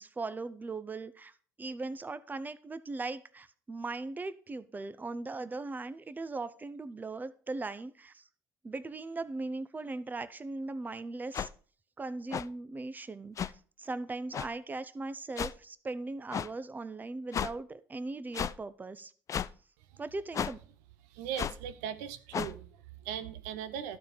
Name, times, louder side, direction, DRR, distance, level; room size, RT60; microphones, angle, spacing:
voice 1, 0.0-1.3 1.6-8.2 8.6-11.5 12.0-13.5 13.8-19.1 20.0-20.6, right 3 dB, 20° right, 14 dB, 0.7 m, -39 dB
sound 1, 11.3-11.5 12.3-12.5 13.4-13.5 14.3-14.5 15.4-15.5 16.3-16.5 17.3-17.5 18.3-18.5 19.3-19.5 20.3-20.5 21.4-21.6 22.3-22.5, left 8 dB, 40° left, 0.4 m, -33 dB
voice 2, 21.1-24.0, right 9 dB, 85° right, 11 dB, 0.7 m, -39 dB
12.0 x 4.4 x 5.1 m, 0.43 s
hypercardioid pair, 70°, 8 cm